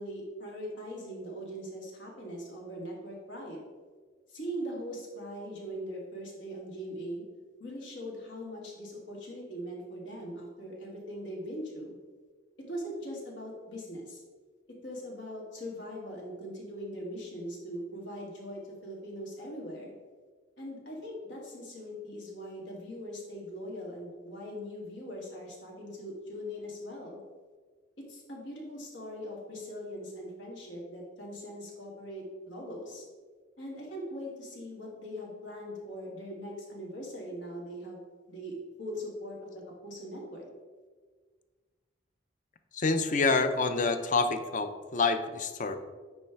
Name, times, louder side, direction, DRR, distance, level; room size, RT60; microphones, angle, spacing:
voice 1, 0.0-3.6 4.3-7.2 7.6-11.9 12.7-14.2 14.8-19.9 20.6-27.2 28.1-33.0 33.6-40.5, equal, 80° left, -2 dB, 1.8 m, -41 dB
voice 2, 42.7-45.8, left 4 dB, 40° left, 9 dB, 0.5 m, -27 dB
9.5 x 3.3 x 4.5 m, 1.5 s
head